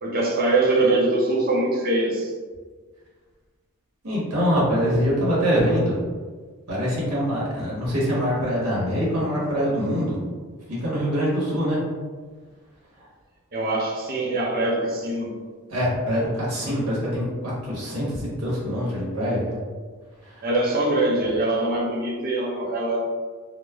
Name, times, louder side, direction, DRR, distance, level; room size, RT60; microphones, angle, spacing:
voice 1, 0.0-2.3 13.5-15.3 20.4-23.0, right 2 dB, 40° right, -2 dB, 0.5 m, -23 dB
voice 2, 4.0-6.0 6.7-10.2 10.8-11.8 13.0-13.1 15.7-19.6 20.2-20.5, equal, 85° right, -6 dB, 1.0 m, -24 dB
3.0 x 2.0 x 2.3 m, 1.5 s
head